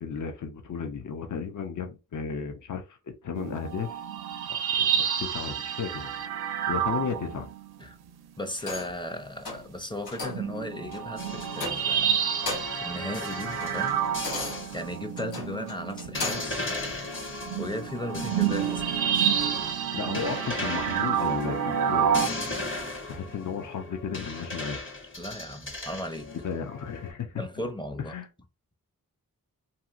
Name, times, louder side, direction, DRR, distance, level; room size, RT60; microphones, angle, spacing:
voice 1, 0.0-4.0 4.5-6.2 6.7-7.5 19.9-22.2 23.1-24.8 26.4-27.5 28.1-28.3, left 6 dB, 55° left, 0.6 m, -34 dB
sound 1, 3.4-7.9 8.9-9.0 10.2-22.3, right 9 dB, 80° right, 0.5 m, -29 dB
voice 2, 8.4-14.0 14.4-16.7 17.2-18.9 25.2-26.3 27.4-28.1, left 1 dB, 15° left, 0.6 m, -36 dB
sound 2, 8.6-9.0 9.4-9.7 10.1-10.5 10.9-11.1 11.5-12.0 12.3-12.9 13.3-16.6 17.1-17.2, left 3 dB, 90° left, 1.0 m, -37 dB
sound 3, 11.2-15.0 15.4-15.5 16.1-27.1, left 2 dB, 35° left, 1.1 m, -37 dB
2.8 x 2.8 x 2.4 m
cardioid pair, 55°, 37 cm